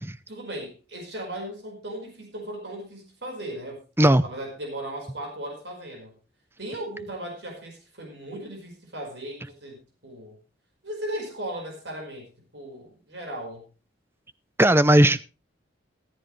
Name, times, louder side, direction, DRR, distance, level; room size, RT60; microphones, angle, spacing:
voice 1, 0.3-3.8 4.2-6.1 6.6-10.4 10.8-13.7, right 1 dB, 65° right, 5.0 m, -37 dB
voice 2, 14.6-15.2, right 1 dB, 10° right, 0.6 m, -17 dB
14.0 x 14.0 x 3.3 m
head